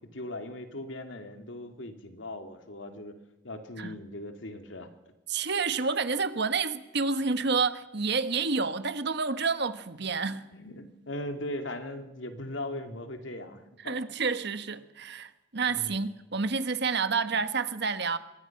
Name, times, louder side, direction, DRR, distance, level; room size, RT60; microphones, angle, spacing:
voice 1, 0.1-3.2 3.4-4.9 10.5-14.1 15.7-16.1 17.3-17.4, left 1 dB, 75° left, 2.6 m, -39 dB
voice 2, 5.3-10.5 13.8-18.2, right 4 dB, 60° right, 1.4 m, -29 dB
26.0 x 22.5 x 6.0 m
head